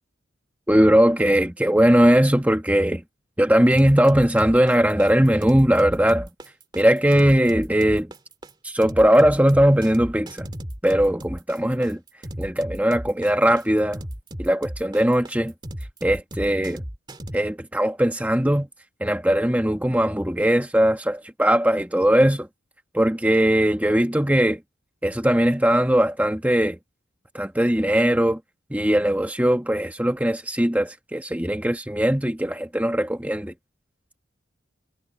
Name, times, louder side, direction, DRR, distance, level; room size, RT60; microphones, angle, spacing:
voice 1, 0.7-3.0 3.4-6.3 6.7-8.1 8.6-10.5 10.8-12.0 12.4-14.0 14.4-15.5 16.0-16.8 17.3-18.7 19.0-22.5 22.9-24.6 25.0-26.8 27.3-28.4 28.7-33.5, equal, 10° right, 1.3 m, -19 dB
sound 1, 3.7-17.4, equal, 25° right, 2.3 m, -35 dB
head